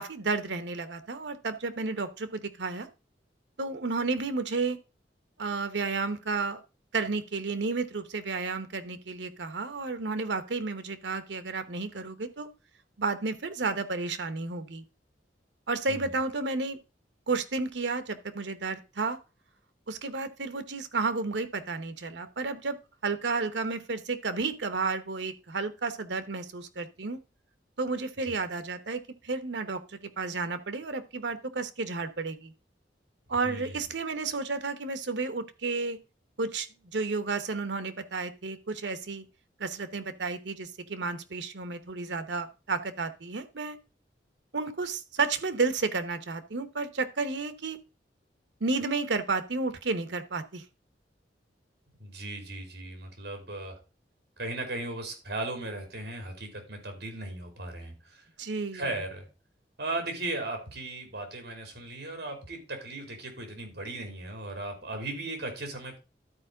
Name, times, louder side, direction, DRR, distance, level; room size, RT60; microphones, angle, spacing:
voice 1, 0.0-2.9 3.6-4.8 5.4-6.6 6.9-12.5 13.0-14.8 15.7-16.8 17.3-19.2 19.9-22.8 23.0-27.2 27.8-32.5 33.3-36.0 36.4-36.7 36.9-39.2 39.6-43.8 44.5-47.8 48.6-50.6 58.4-58.8, right 4 dB, 90° right, 12 dB, 0.9 m, -32 dB
voice 2, 33.4-33.8 52.0-53.8 54.4-58.3 58.7-59.3 59.8-66.0, right 2 dB, 65° right, 4 dB, 2.9 m, -37 dB
12.5 x 4.5 x 3.8 m, 0.30 s
head